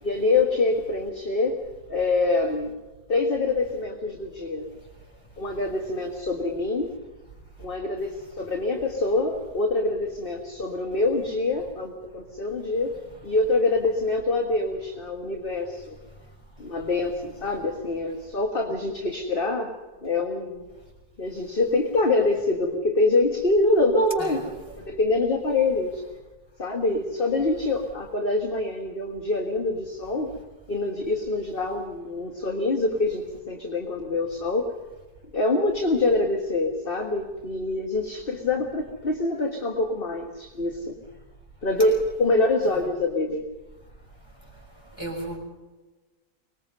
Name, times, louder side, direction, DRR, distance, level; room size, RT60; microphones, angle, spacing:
voice 1, 0.0-1.6 1.9-2.8 3.1-4.7 5.4-6.9 7.6-13.0 13.2-16.0 16.6-19.7 20.0-20.7 21.2-24.4 24.8-26.0 26.6-30.3 30.7-34.7 35.3-41.0 41.6-43.5, left 2 dB, 35° left, 3 dB, 1.8 m, -25 dB
voice 2, 45.0-45.4, right 1 dB, 15° left, 0 dB, 5.9 m, -34 dB
24.5 x 20.5 x 5.4 m, 1.2 s
omnidirectional pair, 1.7 m